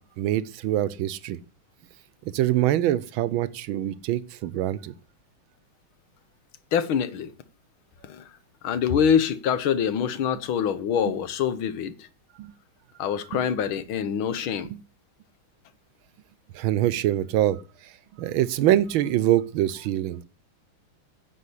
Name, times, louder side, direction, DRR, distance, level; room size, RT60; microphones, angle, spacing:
voice 1, 0.2-1.4 2.3-4.9 12.4-12.5 14.6-14.8 16.5-17.9 18.2-20.2, right 13 dB, 75° right, 1.5 m, -24 dB
voice 2, 6.7-7.3 8.0-8.3 8.6-12.1 13.0-14.7, left 8 dB, 75° left, 1.8 m, -25 dB
9.7 x 7.1 x 8.3 m
omnidirectional pair, 2.3 m